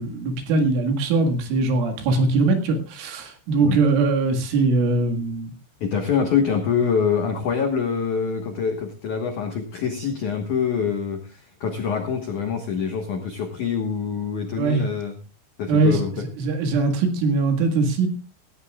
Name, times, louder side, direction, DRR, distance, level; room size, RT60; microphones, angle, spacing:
voice 1, 0.0-5.5 14.6-14.8 15.7-16.0 16.4-18.1, right 3 dB, 75° right, 4 dB, 4.2 m, -21 dB
voice 2, 5.8-15.2 15.6-16.2, left 6 dB, 85° left, 5 dB, 1.7 m, -25 dB
17.5 x 17.0 x 2.4 m, 0.31 s
omnidirectional pair, 5.9 m